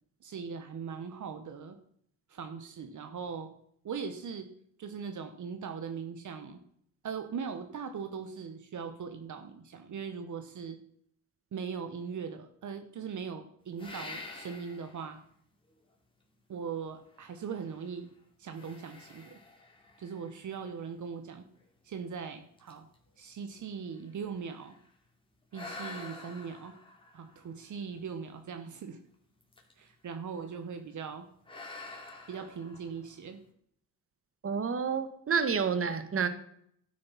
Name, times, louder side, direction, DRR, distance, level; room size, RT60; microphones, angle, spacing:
voice 1, 0.2-1.8 2.3-3.5 3.8-4.5 4.8-6.6 7.0-10.8 11.5-15.2 16.5-18.1 18.4-19.4 20.0-21.4 21.8-22.9 23.2-24.8 25.5-26.7 27.1-29.0 29.8-31.3 32.3-33.4, right 6 dB, 55° right, 7 dB, 1.2 m, -40 dB
sound 1, 13.8-15.1 15.7-15.8 17.1-18.0 18.5-20.9 21.6-21.7 22.2-22.3 22.6-24.9 25.5-28.2 29.4-29.9 30.2-30.6 31.4-33.3, left 3 dB, 15° left, 2.8 m, -48 dB
voice 2, 34.4-36.3, right 6 dB, 40° right, 10 dB, 1.4 m, -29 dB
12.5 x 6.5 x 5.7 m, 0.68 s
cardioid pair, 85°, 36 cm